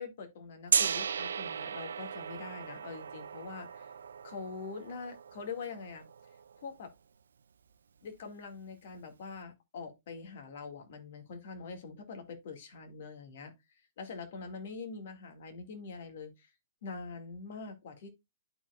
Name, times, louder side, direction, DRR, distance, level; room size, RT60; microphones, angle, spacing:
voice 1, 0.0-3.9 4.2-6.1 6.6-6.9 8.0-13.5 14.0-16.5 16.8-18.1, left 4 dB, 65° left, 2.1 m, -44 dB
Gong, 0.7-6.6, right 6 dB, 85° right, 0.4 m, -35 dB
12.0 x 4.6 x 2.4 m
hypercardioid pair, 130°, 0 cm